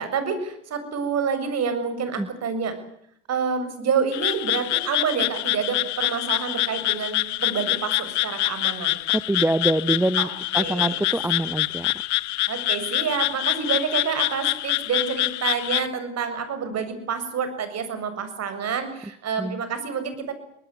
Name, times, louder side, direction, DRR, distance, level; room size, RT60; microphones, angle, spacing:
voice 1, 0.0-2.7 3.3-9.0 10.2-11.0 12.5-20.3, right 6 dB, 45° right, 10 dB, 7.1 m, -28 dB
Frog, 4.1-15.9, left 18 dB, 50° left, 0.9 m, -26 dB
voice 2, 9.1-10.3 10.5-12.0 19.4-19.6, right 1 dB, 5° right, 14 dB, 1.1 m, -24 dB
23.0 x 20.0 x 9.7 m, 0.72 s
hypercardioid pair, 70°, 37 cm